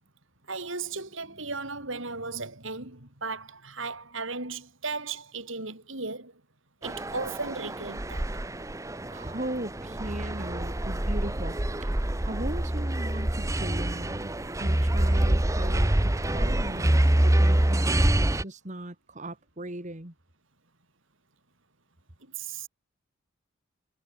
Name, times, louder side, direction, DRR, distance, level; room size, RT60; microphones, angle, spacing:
voice 1, 0.5-6.4 6.8-8.3 22.2-22.7, right 4 dB, 65° right, 5.3 m, -36 dB
sound 1, 6.8-18.4, right 1 dB, 15° right, 0.8 m, -26 dB
voice 2, 9.1-14.3 14.6-20.1, right 1 dB, 35° right, 2.5 m, -38 dB
head